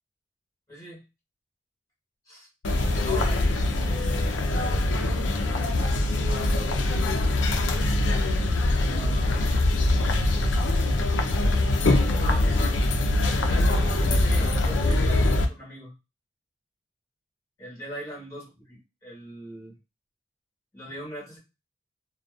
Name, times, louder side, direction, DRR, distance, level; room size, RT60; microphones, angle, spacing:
voice 1, 0.7-1.0 2.3-2.5 3.0-4.4 5.1-5.9 8.9-10.6 12.2-12.9 13.3-15.9 17.6-19.7 20.7-21.4, equal, 15° left, -4 dB, 1.2 m, -41 dB
sound 1, 2.6-15.5, left 2 dB, 80° left, 0.5 m, -23 dB
2.6 x 2.3 x 2.4 m, 0.26 s
head